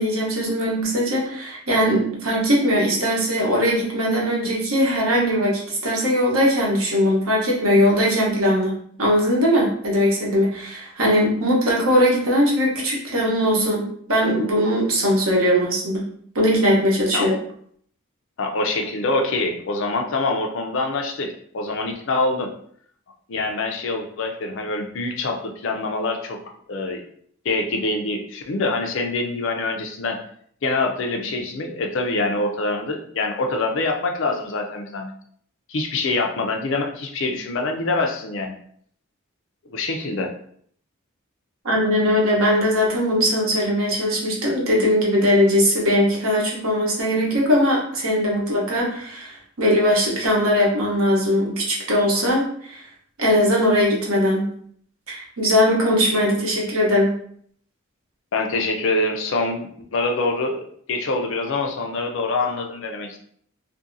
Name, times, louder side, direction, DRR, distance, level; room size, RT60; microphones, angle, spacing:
voice 1, 0.0-8.7 9.0-16.0 16.3-17.4 41.6-52.8 53.2-54.5 55.1-57.1, equal, 85° right, -3 dB, 1.0 m, -20 dB
voice 2, 18.4-22.5 23.3-26.4 26.7-27.0 27.4-30.2 30.6-35.1 35.7-38.6 39.7-40.3 58.3-60.6 60.9-63.2, left 2 dB, 60° left, 3 dB, 0.5 m, -25 dB
2.6 x 2.6 x 2.5 m, 0.62 s
head